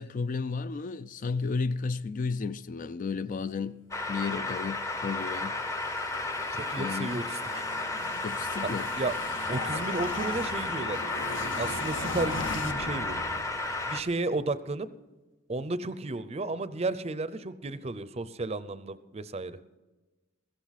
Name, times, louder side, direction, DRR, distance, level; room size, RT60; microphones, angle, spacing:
voice 1, 0.0-3.8 4.1-5.6 6.8-7.2 8.2-8.9, left 4 dB, 40° left, 0.4 m, -33 dB
sound 1, 3.9-14.0, left 2 dB, 15° left, 0.7 m, -33 dB
sound 2, 4.6-14.0, left 3 dB, 65° left, 1.0 m, -39 dB
voice 2, 6.5-7.6 9.0-9.2 9.5-11.0 11.6-13.2 13.9-14.9 15.5-19.6, right 2 dB, 35° right, 0.6 m, -33 dB
16.0 x 14.5 x 4.1 m
head